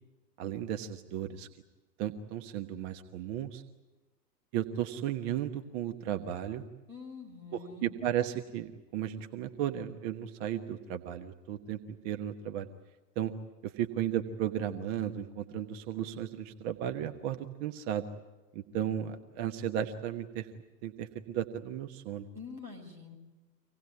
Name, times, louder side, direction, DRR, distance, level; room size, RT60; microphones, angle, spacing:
voice 1, 0.4-1.5 2.0-3.6 4.5-6.6 7.5-11.8 12.0-12.7 13.1-13.3 13.6-18.0 18.5-20.5 20.8-22.3, right 10 dB, 40° right, 7 dB, 1.3 m, -35 dB
voice 2, 6.9-7.9 22.3-23.2, left 5 dB, 85° right, 4 dB, 6.3 m, -46 dB
25.5 x 18.0 x 9.7 m, 1.1 s
figure-of-eight pair, 100°, 50 cm